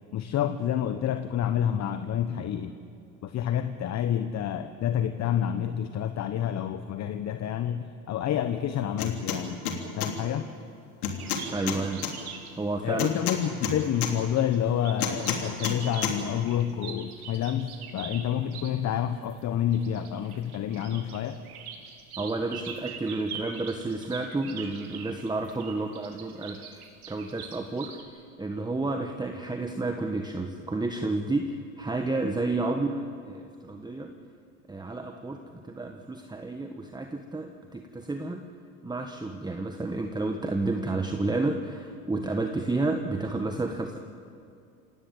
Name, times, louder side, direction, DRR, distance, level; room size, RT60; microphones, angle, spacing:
voice 1, 0.1-2.7 3.2-9.6 10.0-10.5 12.8-21.4, left 10 dB, 40° left, 9 dB, 1.2 m, -28 dB
sound 1, 9.0-9.4 9.7-10.1 11.0-12.1 13.0-14.1 15.0-15.8 16.0-16.2, left 8 dB, 75° left, 3.3 m, -29 dB
sound 2, 11.2-18.8 19.2-28.0, right 7 dB, 80° right, 3.3 m, -43 dB
voice 2, 11.5-12.1 12.6-13.1 22.2-26.8 27.1-34.1 34.7-38.4 38.8-44.0, right 2 dB, 10° right, 5 dB, 1.4 m, -31 dB
28.0 x 17.0 x 8.7 m, 2.4 s
hypercardioid pair, 85°, 44 cm